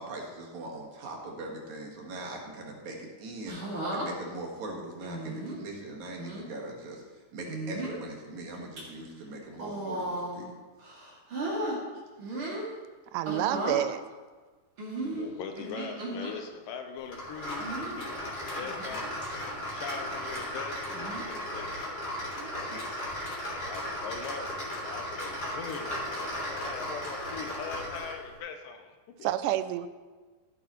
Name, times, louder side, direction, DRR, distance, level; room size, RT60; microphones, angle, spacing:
voice 1, 0.0-7.0 7.3-10.5 22.7-23.0, right 2 dB, 65° right, 0 dB, 3.0 m, -41 dB
sound 1, 3.5-4.1 5.0-5.6 6.2-6.4 7.4-8.0 8.5-8.8 9.5-10.5 10.8-11.8 12.2-12.7 13.2-13.8 14.8-16.3 17.6-18.0 18.6-18.9 19.2-19.3 20.9-21.3 22.4-22.7, right 1 dB, 40° right, 3.0 m, -35 dB
voice 2, 13.1-14.0 29.2-29.9, right 13 dB, 80° right, 13 dB, 2.1 m, -28 dB
voice 3, 15.0-21.8 23.6-29.3, left 6 dB, 90° left, 5 dB, 2.7 m, -42 dB
sound 2, 17.1-28.2, equal, 35° left, 4.3 m, -36 dB
15.0 x 8.9 x 3.1 m, 1.4 s
omnidirectional pair, 3.8 m